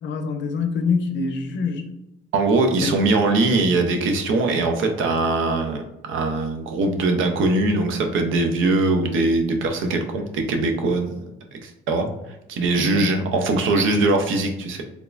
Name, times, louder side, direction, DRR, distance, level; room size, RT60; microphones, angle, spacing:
voice 1, 0.0-1.9 2.8-3.0 12.8-13.2, left 5 dB, 70° left, 7 dB, 0.5 m, -25 dB
voice 2, 2.3-11.1 11.5-12.1 12.5-14.8, right 2 dB, 80° right, 5 dB, 0.6 m, -21 dB
3.6 x 2.9 x 2.4 m, 0.87 s
cardioid pair, 90°, 20 cm